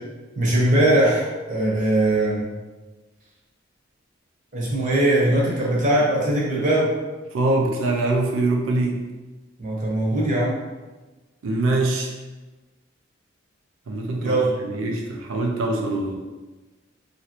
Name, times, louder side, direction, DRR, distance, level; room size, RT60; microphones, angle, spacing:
voice 1, 0.4-2.5 4.5-6.9 9.6-10.6 14.2-14.5, right 1 dB, 40° right, -4 dB, 0.8 m, -20 dB
voice 2, 7.3-9.0 11.4-12.1 13.9-14.4 14.6-16.1, right 2 dB, 90° right, 1 dB, 0.4 m, -23 dB
3.0 x 2.6 x 2.9 m, 1.2 s
head